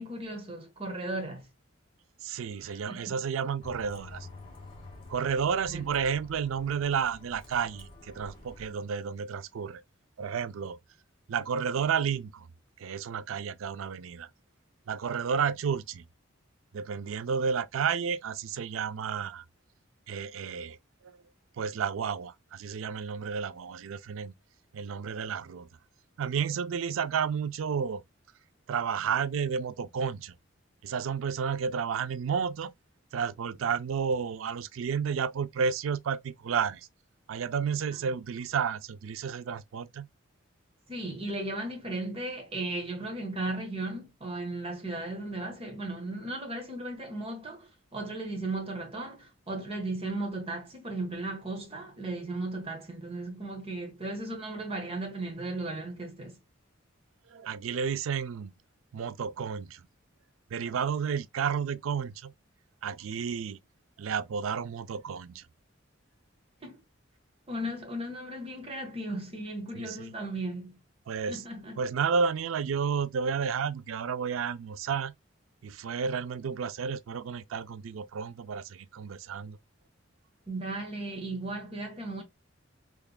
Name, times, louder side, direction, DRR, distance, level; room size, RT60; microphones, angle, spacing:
voice 1, 0.0-1.4 2.6-3.2 5.7-5.8 40.9-56.3 66.6-66.8 67.5-70.8 71.3-71.8 80.5-82.2, right 2 dB, 30° right, 1.3 m, -36 dB
voice 2, 2.2-4.3 5.1-9.8 10.2-10.8 11.3-12.5 12.8-14.3 14.9-16.0 16.7-19.4 20.1-20.8 21.0-21.2 21.6-24.3 24.7-25.7 26.2-28.0 28.7-30.3 30.8-32.7 33.1-36.9 37.3-40.1 57.3-58.5 58.9-59.8 60.5-62.3 62.8-63.6 64.0-65.5 69.8-70.1 71.1-71.4 71.8-75.1 75.6-79.6, right 6 dB, 85° right, 0.4 m, -31 dB
Bus, 3.6-8.7, left 2 dB, 25° left, 1.6 m, -48 dB
3.6 x 3.4 x 2.2 m
head